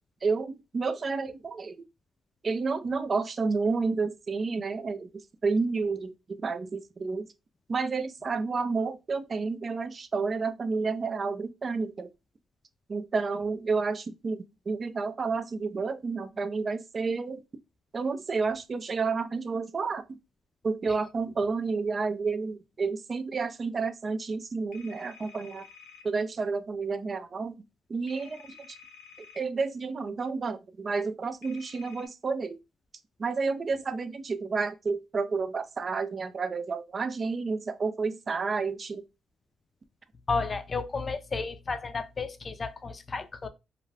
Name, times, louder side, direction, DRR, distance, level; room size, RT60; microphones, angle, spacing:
voice 1, 0.2-1.7 2.4-5.1 5.4-6.1 6.4-7.3 7.7-12.1 12.9-17.4 17.9-20.0 20.6-25.6 26.0-27.6 27.9-28.4 29.4-32.6 33.2-39.0, right 4 dB, 40° right, 0.4 m, -30 dB
sound 1, 24.7-26.1 28.1-29.4 31.4-32.1, left 6 dB, 85° left, 0.7 m, -51 dB
voice 2, 40.3-43.5, left 4 dB, 35° left, 0.4 m, -32 dB
2.4 x 2.2 x 3.2 m
cardioid pair, 90°, 0 cm